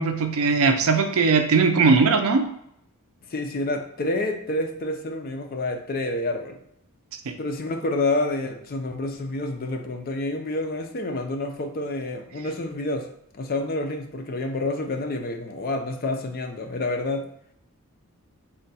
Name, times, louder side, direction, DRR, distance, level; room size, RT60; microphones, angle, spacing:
voice 1, 0.0-2.4, right 4 dB, 70° right, 6 dB, 0.5 m, -19 dB
voice 2, 3.3-6.6 7.4-13.1 13.3-17.2, left 2 dB, 40° left, 4 dB, 0.5 m, -28 dB
3.7 x 2.2 x 4.0 m, 0.74 s
head